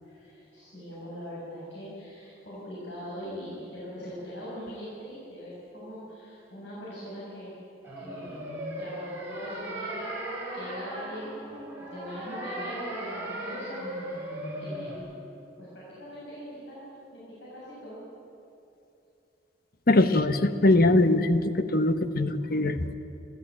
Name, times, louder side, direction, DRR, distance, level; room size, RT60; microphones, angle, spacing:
voice 1, 0.0-7.5 8.0-8.5 8.8-11.4 11.8-13.8 14.6-15.1 15.6-18.0, equal, 80° left, -8 dB, 7.6 m, -41 dB
sound 1, 7.8-15.0, right 1 dB, 15° right, 5.6 m, -37 dB
voice 2, 19.9-22.9, left 2 dB, 55° left, 10 dB, 1.1 m, -22 dB
27.5 x 14.0 x 8.8 m, 2.7 s
head